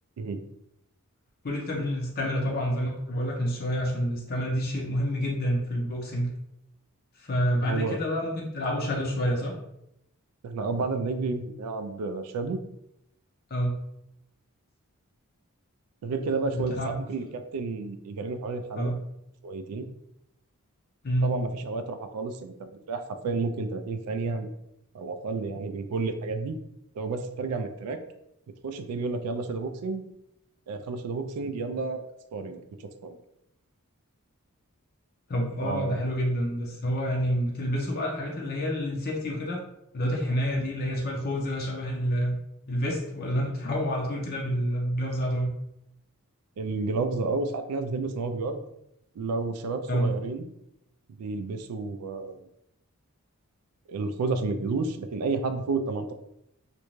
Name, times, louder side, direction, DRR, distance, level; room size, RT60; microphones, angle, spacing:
voice 1, 1.4-6.3 7.2-9.5 13.5-13.8 16.5-16.9 18.8-19.0 21.0-21.4 35.3-39.6 39.9-42.4 42.7-45.5 49.9-50.1, equal, 45° left, -1 dB, 0.5 m, -28 dB
voice 2, 7.6-8.0 10.4-12.6 16.0-18.9 19.4-19.9 21.2-24.5 24.9-26.6 27.0-28.0 28.6-30.0 30.7-32.0 32.3-32.6 33.0-33.2 35.6-36.0 46.6-48.6 49.2-50.5 51.1-52.4 53.9-56.1, right 3 dB, 85° right, 8 dB, 0.3 m, -31 dB
2.5 x 2.2 x 3.0 m, 0.81 s
head